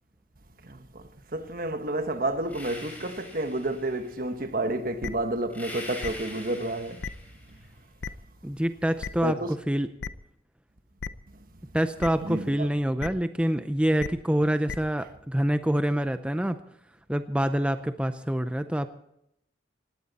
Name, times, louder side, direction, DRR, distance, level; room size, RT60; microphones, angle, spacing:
voice 1, 0.6-7.0 9.2-9.5 12.2-12.7, right 2 dB, 50° right, 1.3 m, -30 dB
sound 1, 2.5-4.1 5.5-7.6, left 1 dB, 10° left, 5.2 m, -43 dB
sound 2, 5.0-5.1 6.0-6.1 7.0-7.1 8.0-8.1 9.0-9.1 10.0-10.1 11.0-11.1 12.0-12.1 13.0-13.1 14.0-14.1 14.7-14.8, left 5 dB, 85° left, 0.7 m, -33 dB
voice 2, 8.4-9.9 11.7-16.6 17.1-18.9, right 1 dB, 5° right, 0.5 m, -26 dB
19.5 x 16.5 x 4.1 m
head